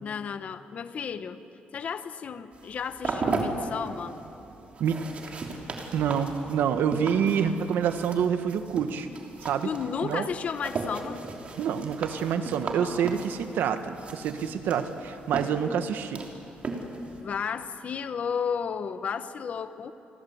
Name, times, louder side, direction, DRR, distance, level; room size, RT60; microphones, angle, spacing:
voice 1, 0.0-1.4 1.7-4.2 9.6-11.2 17.2-19.9, left 6 dB, 45° left, 11 dB, 1.1 m, -33 dB
sound 1, 2.5-17.2, right 3 dB, 40° right, 3.1 m, -37 dB
voice 2, 5.9-9.1 9.4-9.7 10.0-10.3 11.6-16.2, right 8 dB, 85° right, 8 dB, 1.6 m, -27 dB
29.5 x 22.0 x 8.0 m, 3.0 s
cardioid pair, 155°, 3 cm